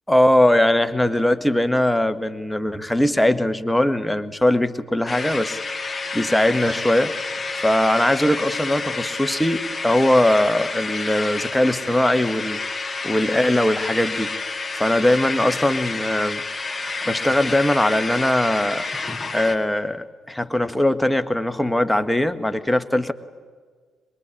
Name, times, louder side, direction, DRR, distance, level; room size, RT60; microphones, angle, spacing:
voice 1, 0.1-7.1 7.6-14.3 14.7-16.4 17.0-18.8 19.3-23.1, left 1 dB, 10° left, 10 dB, 1.4 m, -20 dB
sound 1, 5.1-19.6, left 3 dB, 25° left, 2.4 m, -29 dB
24.0 x 21.5 x 10.0 m, 1.5 s
figure-of-eight pair, 40°, 0 cm